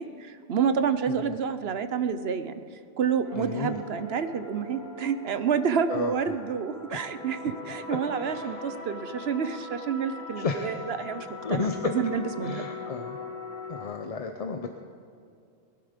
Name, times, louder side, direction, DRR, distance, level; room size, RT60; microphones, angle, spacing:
voice 1, 0.0-2.6 3.0-12.7, right 7 dB, 70° right, 11 dB, 1.0 m, -29 dB
sound 1, 3.2-13.8, left 3 dB, 15° right, 4.1 m, -41 dB
voice 2, 3.4-3.8 5.9-6.3 8.2-8.6 10.4-10.8 11.4-11.9 12.4-13.2 13.7-14.7, left 4 dB, 40° left, 4 dB, 0.7 m, -32 dB
21.5 x 11.5 x 5.1 m, 2.4 s
omnidirectional pair, 1.1 m